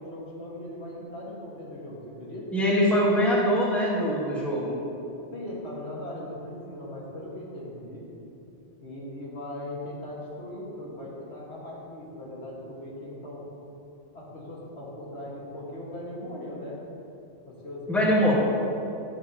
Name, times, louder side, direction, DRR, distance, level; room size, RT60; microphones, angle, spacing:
voice 1, 0.0-2.5 4.3-4.6 5.3-8.1 8.8-13.4 14.1-16.8 17.5-18.3, left 1 dB, 60° left, -6 dB, 2.1 m, -39 dB
voice 2, 2.5-4.8 17.9-18.3, equal, ahead, -6 dB, 1.6 m, -23 dB
10.5 x 10.5 x 3.0 m, 2.8 s
omnidirectional pair, 1.2 m